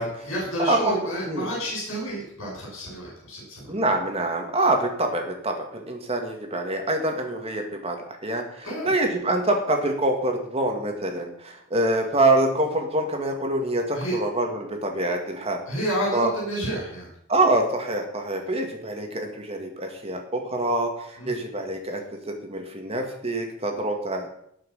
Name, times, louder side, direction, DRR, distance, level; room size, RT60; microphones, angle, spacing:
voice 1, 0.0-3.6 8.6-8.9 13.9-14.2 15.7-17.1 21.2-21.4, equal, 65° left, -4 dB, 7.1 m, -30 dB
voice 2, 0.6-0.9 1.3-1.5 3.7-8.0 8.2-15.6 16.1-16.3 17.3-24.3, right 2 dB, 30° right, 3 dB, 2.3 m, -25 dB
19.0 x 6.4 x 5.8 m, 0.71 s
head